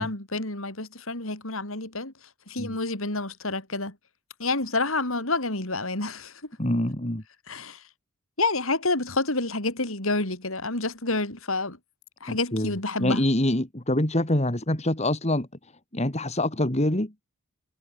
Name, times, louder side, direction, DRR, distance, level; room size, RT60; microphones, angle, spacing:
voice 1, 0.0-2.1 2.5-4.0 4.4-6.3 7.5-7.8 8.4-11.8 12.2-13.2, left 2 dB, 70° left, 5.5 m, -28 dB
voice 2, 6.6-7.2 12.3-12.7 13.0-15.5 15.9-17.1, left 1 dB, 30° left, 2.6 m, -25 dB
head